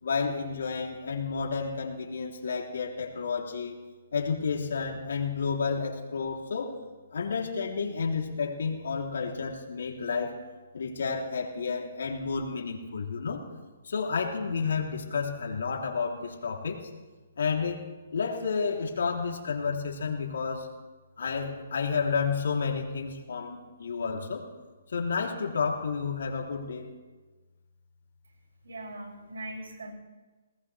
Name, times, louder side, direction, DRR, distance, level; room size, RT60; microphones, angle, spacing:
voice 1, 0.0-3.8 4.1-6.7 7.1-10.4 10.7-13.5 13.8-16.8 17.4-17.8 18.1-20.7 21.2-24.5 24.9-26.9, left 5 dB, 75° left, 1 dB, 3.4 m, -31 dB
voice 2, 28.6-29.9, right 1 dB, 85° right, -1 dB, 6.7 m, -40 dB
21.5 x 19.5 x 3.5 m, 1.3 s
hypercardioid pair, 150°, 0 cm